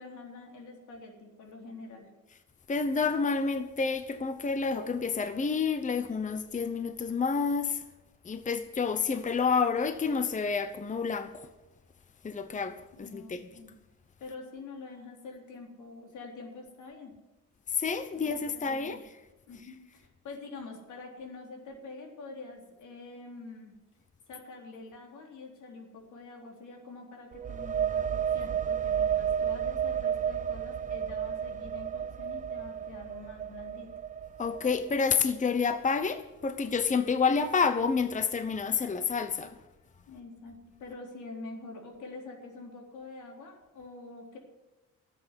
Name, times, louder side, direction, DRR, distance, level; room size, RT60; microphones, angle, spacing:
voice 1, 0.0-2.1 12.9-13.7 14.2-17.1 18.3-19.0 19.5-23.7 24.3-33.9 40.1-44.4, left 3 dB, 80° left, 3.8 m, -46 dB
voice 2, 2.7-7.8 8.2-11.5 12.2-13.5 17.7-19.2 34.4-39.6, left 5 dB, 25° left, 0.8 m, -29 dB
sound 1, 27.3-34.9, right 8 dB, 25° right, 0.4 m, -32 dB
12.5 x 8.2 x 9.8 m
cardioid pair, 90°, 30 cm